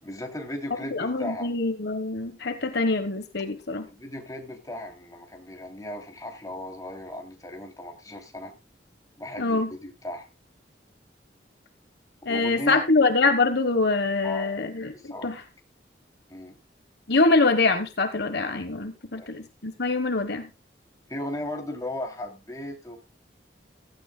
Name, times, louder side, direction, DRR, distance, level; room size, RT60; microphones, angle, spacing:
voice 1, 0.0-1.5 3.9-8.5 9.2-10.3 12.3-12.9 14.2-14.6 14.9-15.4 16.3-16.6 19.1-19.3 21.1-23.0, left 1 dB, 20° left, 2 dB, 2.9 m, -36 dB
voice 2, 0.9-3.9 9.4-9.7 12.2-14.9 15.2-15.4 17.1-20.5, left 3 dB, 65° left, 8 dB, 1.2 m, -24 dB
16.0 x 13.5 x 2.2 m, 0.26 s
head